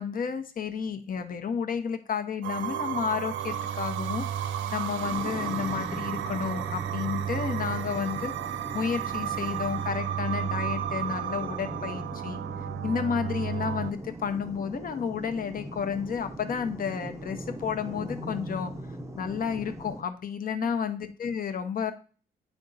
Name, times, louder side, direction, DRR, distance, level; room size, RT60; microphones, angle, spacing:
voice 1, 0.0-4.2 4.7-12.4 12.8-18.7 19.2-21.9, left 6 dB, 45° left, 8 dB, 0.9 m, -31 dB
sound 1, 2.4-13.9, right 10 dB, 75° right, 0.5 m, -32 dB
sound 2, 5.0-20.0, right 1 dB, 15° right, 0.7 m, -41 dB
9.5 x 3.5 x 4.0 m, 0.39 s
cardioid pair, 90°, 20 cm